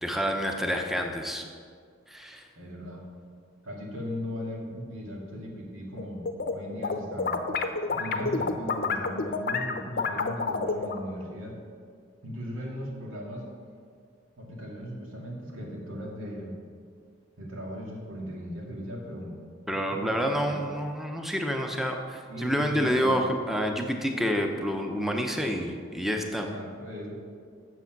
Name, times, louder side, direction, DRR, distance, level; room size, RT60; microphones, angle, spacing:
voice 1, 0.0-1.5 2.1-2.5 19.7-26.5, equal, ahead, 3 dB, 0.7 m, -28 dB
voice 2, 2.6-3.0 3.6-7.4 7.9-11.6 12.2-13.5 14.4-16.5 17.4-19.3 19.7-20.7 22.3-23.2 26.3-27.1, equal, 90° right, -2 dB, 2.2 m, -38 dB
sound 1, 6.0-6.5 6.8-11.0, left 4 dB, 45° left, 0.6 m, -28 dB
8.3 x 7.1 x 5.9 m, 2.1 s
head